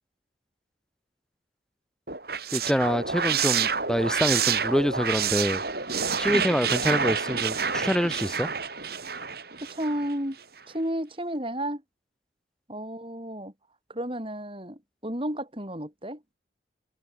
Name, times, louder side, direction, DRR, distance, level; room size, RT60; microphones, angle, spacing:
sound 1, 2.1-10.1, right 6 dB, 55° right, 5.5 m, -28 dB
voice 1, 2.5-5.6 6.2-8.5, equal, 5° left, 2.9 m, -26 dB
voice 2, 9.6-10.4 10.7-11.8 12.7-13.5 13.9-16.2, right 1 dB, 30° right, 6.1 m, -32 dB
head